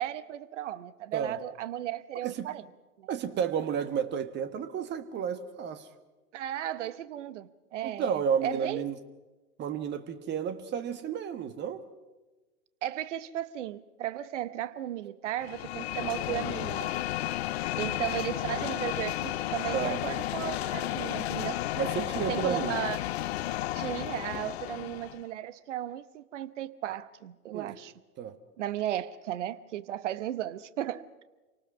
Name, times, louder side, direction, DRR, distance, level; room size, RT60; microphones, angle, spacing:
voice 1, 0.0-2.7 3.0-3.1 6.3-8.8 12.8-16.9 17.8-21.6 22.1-23.0 23.7-27.9 28.6-31.2, right 12 dB, 50° right, 1.1 m, -35 dB
voice 2, 3.1-5.9 7.8-9.0 9.6-11.8 17.8-18.1 19.7-20.0 21.8-22.8 27.5-27.7 28.2-28.3, right 7 dB, 25° right, 1.5 m, -32 dB
sound 1, 15.4-25.2, left 14 dB, 45° left, 0.6 m, -33 dB
28.0 x 18.5 x 6.1 m
figure-of-eight pair, 95°, 45 cm